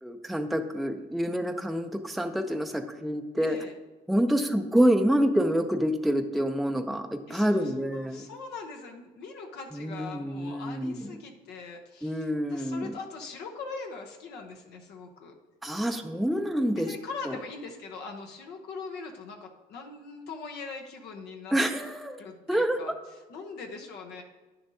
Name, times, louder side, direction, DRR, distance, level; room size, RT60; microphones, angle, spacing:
voice 1, 0.0-3.6 4.1-8.2 9.7-11.0 12.0-12.9 15.6-16.9 17.2-17.4 21.5-22.2 22.5-22.8, equal, ahead, 5 dB, 0.5 m, -27 dB
voice 2, 3.4-3.7 7.3-15.3 16.7-21.6 22.2-22.9 23.3-24.2, left 4 dB, 80° left, 2 dB, 1.0 m, -41 dB
9.7 x 6.8 x 2.7 m, 1.2 s
cardioid pair, 110°, 17 cm